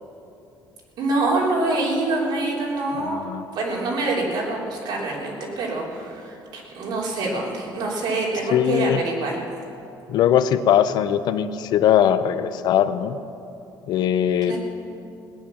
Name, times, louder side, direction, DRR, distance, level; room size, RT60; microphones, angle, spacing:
voice 1, 1.0-3.2 3.6-9.4 14.5-14.6, right 2 dB, 65° right, -3 dB, 3.4 m, -25 dB
voice 2, 3.0-3.4 8.5-9.0 10.1-13.2 13.9-14.6, left 10 dB, 60° left, 12 dB, 0.6 m, -20 dB
17.5 x 10.5 x 7.0 m, 2.8 s
cardioid pair, 165°, 8 cm